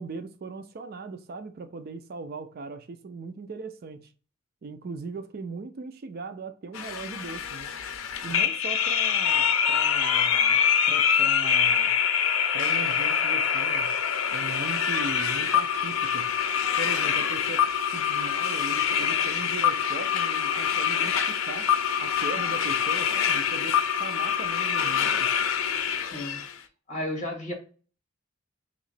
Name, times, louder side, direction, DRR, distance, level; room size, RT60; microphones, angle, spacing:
voice 1, 0.0-4.1 4.6-7.7 8.2-11.9 12.5-14.0 14.3-16.4 16.8-21.7 22.0-25.3, right 3 dB, 50° right, 0.4 m, -39 dB
sound 1, 6.7-26.5, left 8 dB, 85° left, 0.5 m, -25 dB
voice 2, 26.0-26.4 26.9-27.5, left 1 dB, 35° left, 1.5 m, -33 dB
3.0 x 2.9 x 4.0 m
head